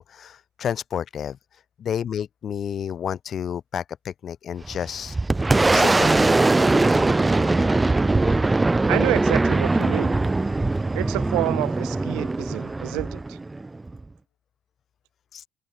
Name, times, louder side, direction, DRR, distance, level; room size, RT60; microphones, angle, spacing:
voice 1, 0.0-1.4 1.8-5.2 5.7-6.3 15.3-15.5, left 8 dB, 50° left, 1.0 m, -30 dB
Boom, 4.6-14.0, right 2 dB, 15° right, 0.3 m, -21 dB
sound 1, 6.5-11.5, left 40 dB or more, 85° left, 2.9 m, -46 dB
voice 2, 8.9-10.2 10.9-13.4, right 22 dB, 80° right, 0.7 m, -28 dB
open air
supercardioid pair, 85°, 0 cm